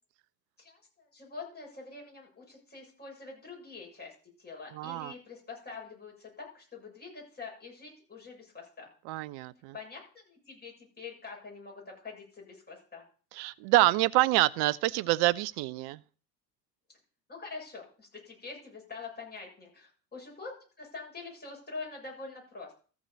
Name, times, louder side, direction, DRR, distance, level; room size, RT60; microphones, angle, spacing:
voice 1, 0.6-4.1 4.4-8.9 9.7-13.1 17.3-20.5 20.8-22.8, left 4 dB, 20° left, 6.7 m, -45 dB
voice 2, 4.7-5.1 9.1-9.7 13.3-16.0, right 17 dB, 50° right, 0.6 m, -26 dB
14.0 x 4.8 x 6.7 m
hypercardioid pair, 80°, 49 cm